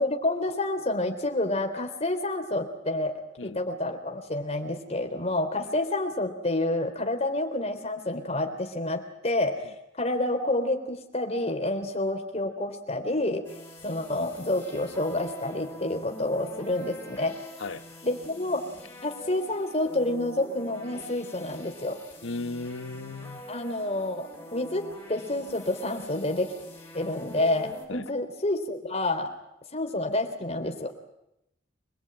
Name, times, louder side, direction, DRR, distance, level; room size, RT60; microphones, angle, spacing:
voice 1, 0.0-9.6 10.0-13.5 13.8-17.4 18.0-18.6 19.0-22.0 23.5-26.5 26.9-29.3 29.7-30.9, left 2 dB, 35° left, 3.5 m, -29 dB
sound 1, 13.4-27.9, equal, 10° left, 6.8 m, -45 dB
voice 2, 22.2-23.4 27.9-28.1, left 3 dB, 85° left, 1.1 m, -36 dB
25.5 x 21.0 x 9.0 m
head